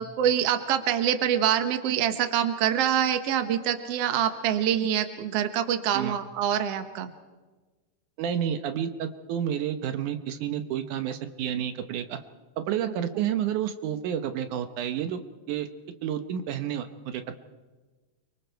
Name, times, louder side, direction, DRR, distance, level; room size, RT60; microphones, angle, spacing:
voice 1, 0.0-7.1, right 9 dB, 60° right, 9 dB, 2.1 m, -25 dB
voice 2, 8.2-12.2 12.6-15.2 15.5-15.7 16.0-17.4, right 9 dB, 75° right, 8 dB, 2.4 m, -30 dB
29.5 x 24.0 x 4.6 m, 1.3 s
omnidirectional pair, 3.7 m